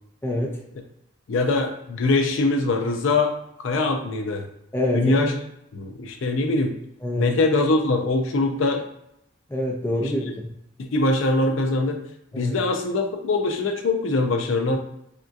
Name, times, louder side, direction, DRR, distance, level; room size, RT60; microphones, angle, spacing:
voice 1, 0.2-0.6 4.7-5.2 7.0-7.3 9.5-10.3 12.3-12.5, left 1 dB, 10° left, -1 dB, 0.4 m, -25 dB
voice 2, 1.3-4.5 4.9-5.3 5.7-6.7 7.2-8.9 10.8-12.0 12.4-14.8, left 2 dB, 75° left, 4 dB, 0.4 m, -22 dB
3.5 x 2.6 x 2.3 m, 0.78 s
head